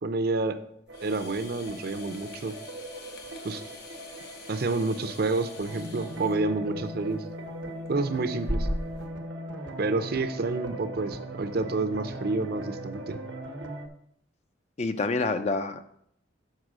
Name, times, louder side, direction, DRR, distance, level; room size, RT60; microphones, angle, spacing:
voice 1, 0.0-0.6 1.0-2.5 3.4-3.6 4.5-7.2 7.9-8.7 9.8-13.2, right 3 dB, 55° right, 11 dB, 0.6 m, -29 dB
sound 1, 0.9-9.1, equal, 55° left, 1.1 m, -39 dB
sound 2, 0.9-13.9, right 1 dB, 90° right, 1.0 m, -39 dB
voice 2, 14.8-15.8, left 3 dB, 35° left, 9 dB, 0.4 m, -27 dB
6.5 x 4.6 x 6.1 m, 0.71 s
head